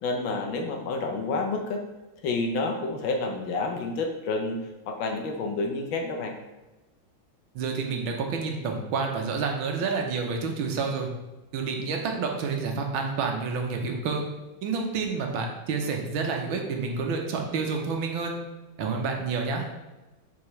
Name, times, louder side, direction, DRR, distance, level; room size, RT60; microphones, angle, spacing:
voice 1, 0.0-1.8 2.2-4.6 4.9-6.3, left 3 dB, 75° left, 3 dB, 1.5 m, -29 dB
voice 2, 7.5-11.1 11.5-14.2 14.6-18.3 18.8-19.7, right 4 dB, 80° right, 2 dB, 1.7 m, -29 dB
7.2 x 4.7 x 3.2 m, 1.1 s
omnidirectional pair, 2.2 m